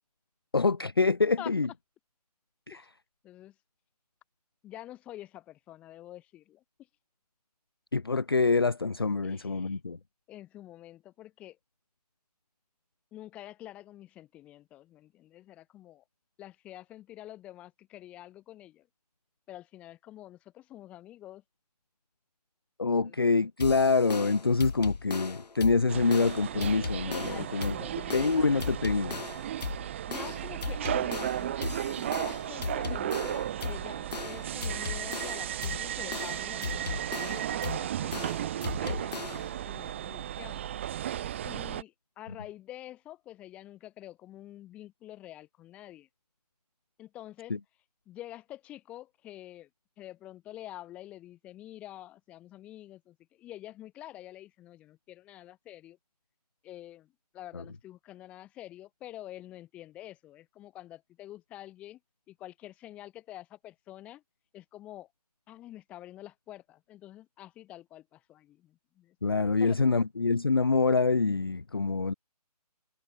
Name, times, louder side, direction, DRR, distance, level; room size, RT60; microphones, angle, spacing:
voice 1, 0.5-1.7 2.7-2.8 7.9-10.0 22.8-27.7 28.1-29.2 69.2-72.1, left 4 dB, 35° left, 0.4 m, -26 dB
voice 2, 3.2-3.5 4.6-6.6 9.2-9.8 10.3-11.6 13.1-16.0 16.4-18.9 19.5-21.4 22.9-23.2 27.3-28.9 30.1-37.0 37.3-40.7 41.4-46.1 47.0-47.6 48.1-49.7 50.0-56.0 56.6-62.0 62.3-64.2 64.5-65.1 65.5-69.2 69.6-69.9, left 14 dB, 5° left, 2.0 m, -47 dB
sound 1, 23.6-39.6, left 4 dB, 80° left, 1.6 m, -38 dB
sound 2, 25.9-41.8, right 11 dB, 20° right, 2.5 m, -35 dB
hypercardioid pair, 175°, 21 cm